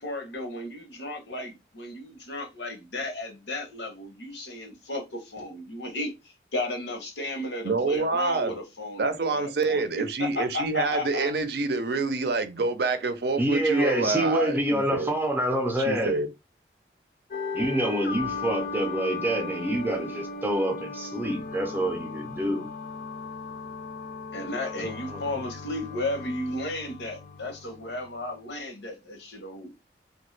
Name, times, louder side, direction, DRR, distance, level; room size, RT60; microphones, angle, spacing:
voice 1, 0.0-9.9 10.2-11.3 24.3-29.7, left 2 dB, 80° left, 0.9 m, -34 dB
voice 2, 7.6-8.5 9.0-15.1 15.8-16.3, right 3 dB, 65° right, 0.5 m, -27 dB
voice 3, 13.4-16.1 17.5-22.7 24.7-25.5, right 1 dB, 10° right, 0.5 m, -27 dB
sound 1, 17.3-28.3, left 4 dB, 50° left, 0.5 m, -37 dB
3.0 x 2.2 x 3.1 m
head